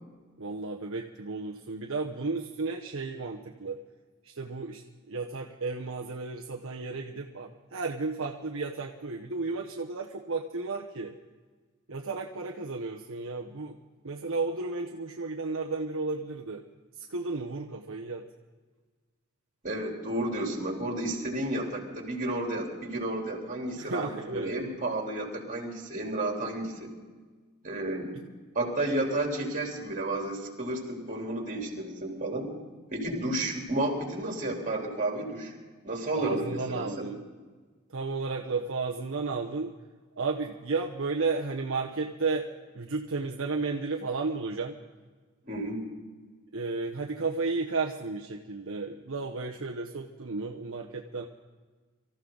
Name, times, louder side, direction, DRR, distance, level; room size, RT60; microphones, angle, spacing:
voice 1, 0.4-3.8 4.2-4.8 5.1-11.2 11.9-13.8 14.0-16.6 17.0-18.2 23.7-24.5 36.1-37.2 37.9-39.7 40.2-42.5 42.7-44.8 46.5-51.2, right 3 dB, 65° right, 0 dB, 1.0 m, -33 dB
voice 2, 19.6-26.9 27.6-28.1 28.5-32.5 32.9-35.5 35.8-37.1 45.4-45.8, right 1 dB, 35° right, 0 dB, 3.5 m, -32 dB
25.0 x 14.5 x 3.9 m, 1.4 s
head